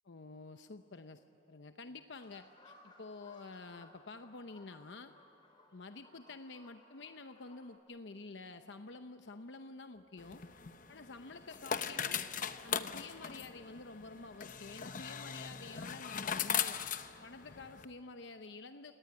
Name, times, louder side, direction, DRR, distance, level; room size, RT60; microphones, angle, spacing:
voice 1, 0.1-5.1 5.7-10.4 10.9-12.2 12.6-16.8 17.2-18.9, left 3 dB, 80° left, 8 dB, 0.8 m, -49 dB
sound 1, 2.2-7.8, left 2 dB, 25° left, 4.8 m, -62 dB
sound 2, 10.2-17.9, left 7 dB, 45° left, 0.9 m, -39 dB
29.0 x 19.0 x 9.6 m, 2.9 s
head